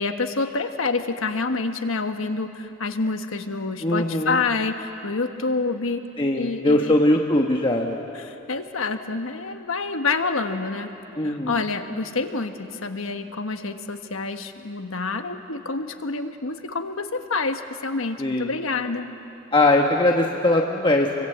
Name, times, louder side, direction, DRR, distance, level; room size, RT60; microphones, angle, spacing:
voice 1, 0.0-6.0 6.4-7.0 8.1-10.9 11.2-19.1, left 3 dB, 70° left, 6 dB, 1.5 m, -27 dB
voice 2, 3.8-4.4 6.2-8.0 11.2-11.6 18.2-18.5 19.5-21.3, left 1 dB, 25° left, 1 dB, 1.2 m, -21 dB
28.0 x 24.0 x 8.0 m, 2.9 s
head